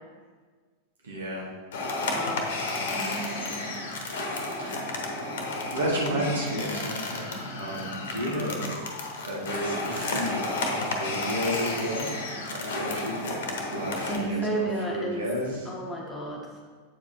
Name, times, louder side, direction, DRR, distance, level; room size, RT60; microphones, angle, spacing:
voice 1, 1.0-1.5 4.5-4.8 5.7-8.8 9.2-12.1 12.5-15.7, equal, 65° right, -3 dB, 1.9 m, -32 dB
sound 1, 1.7-14.2, left 2 dB, 55° left, 1.1 m, -32 dB
voice 2, 2.1-2.4 2.9-3.7 6.1-6.5 8.1-8.6 14.1-15.2 15.6-16.4, right 1 dB, 15° left, -1 dB, 1.3 m, -33 dB
8.1 x 4.9 x 4.4 m, 1.5 s
figure-of-eight pair, 90°, 0 cm